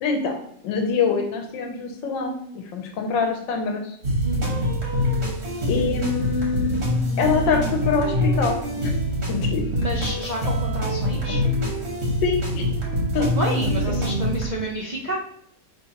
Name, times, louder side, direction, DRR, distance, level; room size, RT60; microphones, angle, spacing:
voice 1, 0.0-0.4 0.6-4.0 5.7-6.8 7.2-8.9 9.3-9.6 12.2-12.7 13.1-13.3, left 5 dB, 90° left, 3 dB, 1.4 m, -24 dB
sound 1, 4.0-14.5, equal, 40° right, 1.4 m, -24 dB
voice 2, 4.2-4.7 9.6-11.4 13.2-15.2, right 1 dB, 70° right, -5 dB, 0.4 m, -30 dB
5.6 x 3.3 x 2.8 m, 0.71 s
omnidirectional pair, 1.9 m